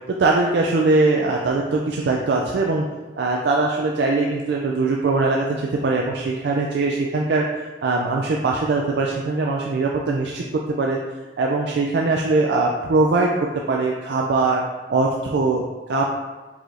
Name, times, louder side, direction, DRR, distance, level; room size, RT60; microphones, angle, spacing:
voice 1, 0.1-2.9 3.2-11.0 11.4-14.6 14.9-15.6 15.9-16.1, right 3 dB, 75° right, 0 dB, 0.4 m, -21 dB
4.8 x 4.1 x 2.6 m, 1.3 s
head